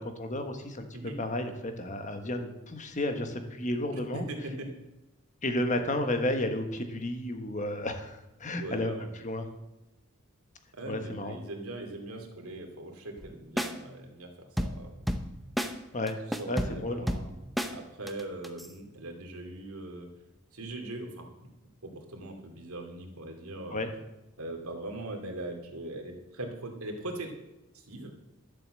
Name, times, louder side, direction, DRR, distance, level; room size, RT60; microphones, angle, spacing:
voice 1, 0.0-0.9 1.2-4.3 5.4-8.9 9.2-9.5 10.9-11.4 15.9-16.2 16.5-17.1 23.7-23.9, left 1 dB, 35° left, 6 dB, 1.3 m, -32 dB
voice 2, 3.9-4.7 8.6-9.1 10.7-14.9 16.3-17.3 17.7-20.1 20.5-21.5 21.8-23.8 24.4-27.3 27.7-28.1, right 1 dB, 85° right, 3 dB, 2.4 m, -40 dB
sound 1, 13.2-13.3 13.6-13.7 14.6-15.3 15.6-15.7 16.1-17.7 18.1-18.7, equal, ahead, 0.7 m, -31 dB
12.0 x 7.5 x 7.6 m, 0.99 s
head